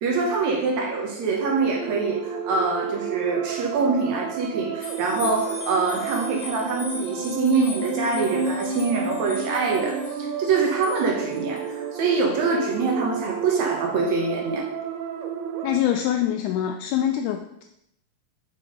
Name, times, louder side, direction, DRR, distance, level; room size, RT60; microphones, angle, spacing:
voice 1, 0.0-14.7, right 4 dB, 65° right, 0 dB, 2.1 m, -24 dB
sound 1, 1.2-15.8, right 6 dB, 80° right, 1.7 m, -32 dB
sound 2, 4.8-12.1 12.6-12.8, left 3 dB, 50° left, 1.5 m, -40 dB
voice 2, 15.6-17.6, left 11 dB, 85° left, 5 dB, 1.8 m, -24 dB
6.0 x 5.8 x 5.0 m, 0.79 s
omnidirectional pair, 4.0 m